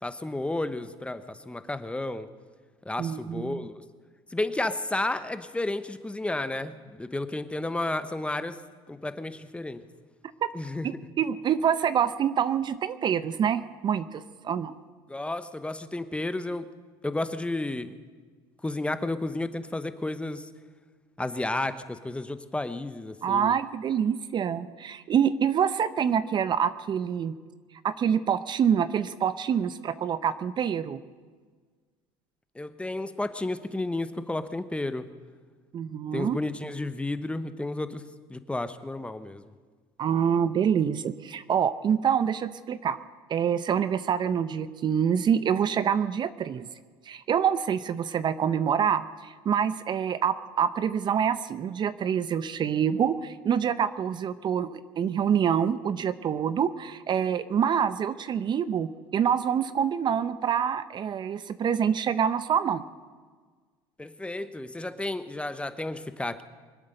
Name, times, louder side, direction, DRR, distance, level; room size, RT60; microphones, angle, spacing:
voice 1, 0.0-2.3 2.8-3.8 4.3-8.6 8.9-9.8 10.5-10.9 15.1-16.7 17.0-17.9 18.6-20.5 21.2-23.5 32.5-35.1 36.1-38.0 38.3-39.4 64.0-66.4, left 2 dB, 10° left, 11 dB, 0.9 m, -32 dB
voice 2, 3.0-3.7 10.4-10.5 10.8-14.7 23.2-27.3 27.8-31.0 35.7-36.4 40.0-43.0 43.3-46.7 47.1-62.8, right 8 dB, 40° right, 14 dB, 0.7 m, -26 dB
24.0 x 8.7 x 6.6 m, 1.5 s
supercardioid pair, 100°, 12 cm